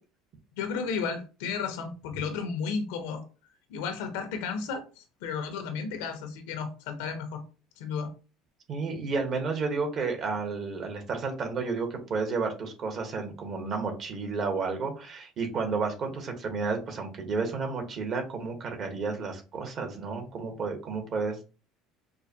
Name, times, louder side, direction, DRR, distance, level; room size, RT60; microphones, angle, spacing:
voice 1, 0.6-3.2 3.7-7.4 7.8-8.1, left 5 dB, 90° left, 7 dB, 0.9 m, -33 dB
voice 2, 8.7-21.4, right 4 dB, 45° right, 3 dB, 1.2 m, -31 dB
4.7 x 2.2 x 2.8 m, 0.33 s
cardioid pair, 125°, 0 cm